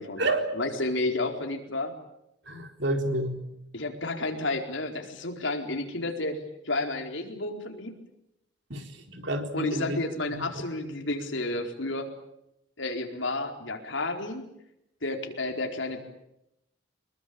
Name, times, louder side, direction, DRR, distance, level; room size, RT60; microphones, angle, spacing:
voice 1, 0.5-1.9 3.7-7.9 9.5-12.1 12.8-14.4 15.0-16.0, left 2 dB, 70° left, 4 dB, 4.4 m, -31 dB
voice 2, 2.5-3.4 8.7-10.0 10.3-10.4, right 1 dB, 60° right, 5 dB, 4.1 m, -29 dB
25.5 x 22.0 x 8.9 m, 0.83 s
head